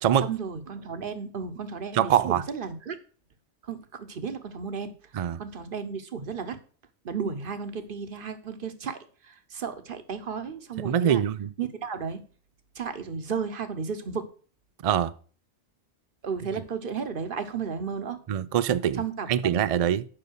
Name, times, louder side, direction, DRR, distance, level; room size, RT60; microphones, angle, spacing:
voice 1, 0.2-3.0 3.6-6.6 7.0-9.0 9.2-11.2 11.6-12.2 12.7-14.3 16.2-18.2 18.9-19.6, right 6 dB, 50° right, 1.1 m, -34 dB
voice 2, 1.9-2.4 5.1-5.4 10.8-11.5 14.8-15.1 18.3-19.0 19.3-20.1, right 9 dB, 75° right, 0.3 m, -23 dB
7.7 x 5.4 x 6.4 m
omnidirectional pair, 1.2 m